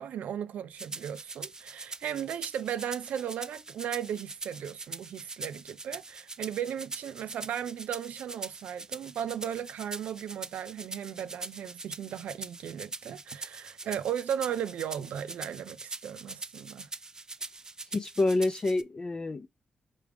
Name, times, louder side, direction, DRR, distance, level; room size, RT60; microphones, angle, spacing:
voice 1, 0.0-16.9, right 9 dB, 90° right, 0.4 m, -36 dB
sound 1, 0.8-18.8, right 3 dB, 25° right, 0.4 m, -43 dB
voice 2, 17.9-19.5, left 2 dB, 35° left, 0.5 m, -28 dB
4.9 x 3.3 x 3.3 m
cardioid pair, 80°, 2 cm